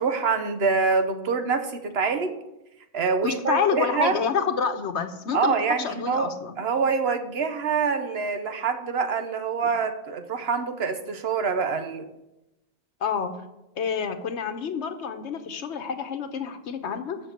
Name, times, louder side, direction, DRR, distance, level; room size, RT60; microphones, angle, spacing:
voice 1, 0.0-2.4 2.9-4.2 5.3-6.3 6.6-12.1, right 5 dB, 65° right, 8 dB, 1.1 m, -25 dB
voice 2, 3.2-6.6 9.6-9.7 13.0-13.4 13.8-17.2, left 6 dB, 85° left, 9 dB, 1.2 m, -28 dB
6.9 x 6.5 x 7.7 m, 0.93 s
omnidirectional pair, 1.1 m